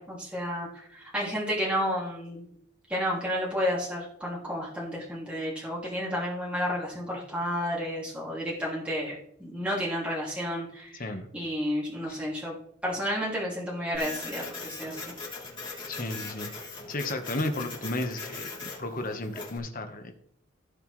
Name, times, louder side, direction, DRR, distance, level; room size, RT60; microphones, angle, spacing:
voice 1, 0.0-2.4 2.9-11.1 11.3-12.5 12.8-15.0, equal, 5° right, -6 dB, 2.7 m, -31 dB
Printer, 13.9-19.6, left 4 dB, 25° left, 3.5 m, -40 dB
voice 2, 15.9-16.5 16.9-20.1, left 2 dB, 45° left, 6 dB, 1.4 m, -33 dB
16.0 x 7.5 x 3.3 m, 0.69 s
head